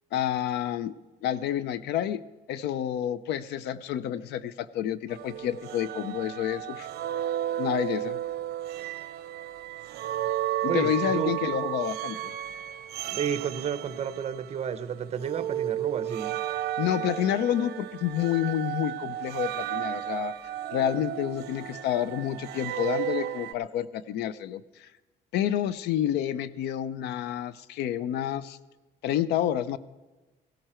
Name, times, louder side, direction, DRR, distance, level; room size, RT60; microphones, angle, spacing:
voice 1, 0.1-1.0 1.2-2.2 2.5-6.9 7.6-8.2 10.6-12.3 16.8-20.3 20.7-24.9 25.3-28.6 29.0-29.8, left 11 dB, 80° left, 17 dB, 0.7 m, -29 dB
sound 1, 5.1-14.8 15.2-23.5, right 12 dB, 75° right, 0.7 m, -33 dB
voice 2, 10.7-11.3 13.1-16.3, right 8 dB, 40° right, 13 dB, 0.9 m, -31 dB
16.5 x 11.5 x 4.4 m, 1.2 s
cardioid pair, 110°, 17 cm